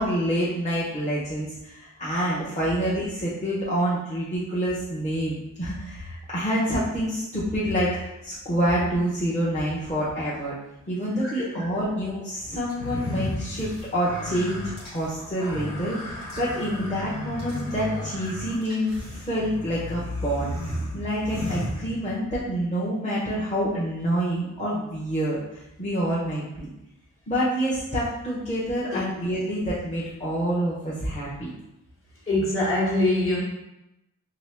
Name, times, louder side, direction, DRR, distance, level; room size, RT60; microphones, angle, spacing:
voice 1, 0.0-8.0 8.2-10.5 10.9-20.5 20.9-26.7 27.3-31.5, equal, 20° left, -9 dB, 0.8 m, -27 dB
voice 2, 11.1-11.6 28.9-29.1 32.3-33.4, left 1 dB, 40° left, -6 dB, 1.3 m, -24 dB
sound 1, 12.7-22.4, left 1 dB, 90° left, 1.4 m, -34 dB
2.8 x 2.8 x 3.3 m, 0.91 s
wide cardioid pair, 80°, 32 cm